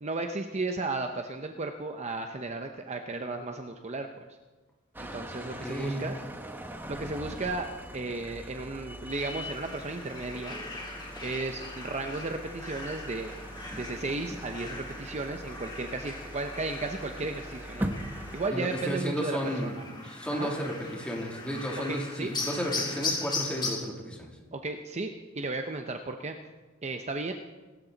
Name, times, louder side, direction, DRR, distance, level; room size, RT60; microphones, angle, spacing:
voice 1, 0.0-4.1 5.0-6.2 6.9-10.5 11.2-13.3 13.7-19.8 20.3-20.5 21.9-22.3 24.5-26.4 26.8-27.3, right 3 dB, 35° right, 5 dB, 0.8 m, -34 dB
sound 1, 4.9-18.5, equal, 10° right, 1.1 m, -41 dB
voice 2, 5.3-6.0 18.5-24.3, equal, 5° left, -1 dB, 2.9 m, -33 dB
sound 2, 9.1-23.7, left 3 dB, 20° left, 3.1 m, -39 dB
25.0 x 13.5 x 4.0 m, 1.3 s
head